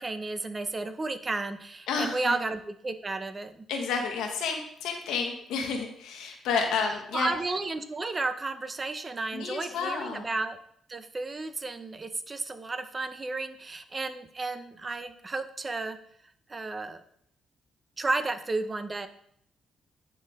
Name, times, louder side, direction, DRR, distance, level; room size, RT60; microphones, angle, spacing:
voice 1, 0.0-3.7 7.1-10.6 10.9-16.0 16.5-17.0 18.0-19.1, right 3 dB, 25° right, 10 dB, 0.7 m, -32 dB
voice 2, 1.9-2.4 3.7-7.3 9.3-10.3, left 5 dB, 85° left, 2 dB, 1.1 m, -30 dB
9.4 x 4.6 x 3.6 m, 0.67 s
cardioid pair, 90°, 0 cm